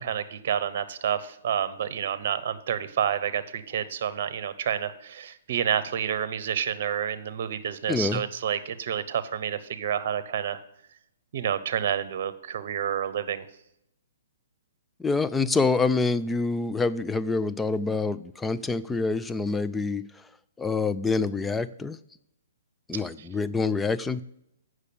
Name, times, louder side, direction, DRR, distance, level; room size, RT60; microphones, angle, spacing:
voice 1, 0.0-10.6 11.3-13.5 23.2-23.3, right 9 dB, 55° right, 15 dB, 0.8 m, -29 dB
voice 2, 7.9-8.2 15.0-20.0 20.6-22.0 22.9-24.2, left 3 dB, 10° left, 13 dB, 0.4 m, -26 dB
8.2 x 6.3 x 7.0 m, 0.81 s
hypercardioid pair, 130°, 0 cm